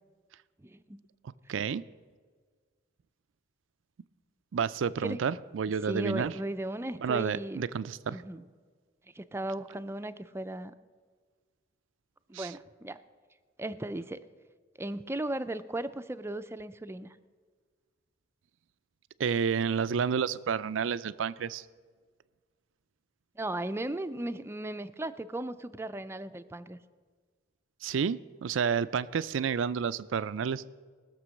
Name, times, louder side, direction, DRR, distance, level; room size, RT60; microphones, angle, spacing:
voice 1, 0.6-1.0 1.5-1.6 5.0-5.2 5.8-7.6 8.1-8.5 9.1-10.7 12.3-13.0 13.6-14.2 14.8-17.2 23.4-26.8, right 1 dB, 15° right, 11 dB, 0.4 m, -36 dB
voice 2, 1.5-1.8 4.5-6.3 7.0-8.2 12.3-12.5 19.2-21.6 27.8-30.6, right 6 dB, 80° right, 17 dB, 0.4 m, -30 dB
18.5 x 6.8 x 6.3 m, 1.5 s
head